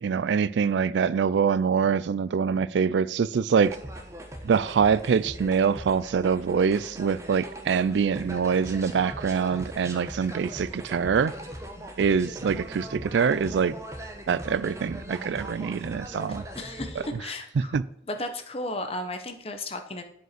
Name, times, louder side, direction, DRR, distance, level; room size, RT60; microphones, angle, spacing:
voice 1, 0.0-3.8 4.4-11.3 12.0-13.7 14.3-16.4 17.6-17.8, right 6 dB, 70° right, 0.3 m, -24 dB
sound 1, 3.6-17.1, equal, 15° right, 1.0 m, -40 dB
voice 2, 16.5-17.7 18.1-20.0, left 1 dB, 30° left, 1.0 m, -34 dB
7.9 x 5.2 x 5.9 m
head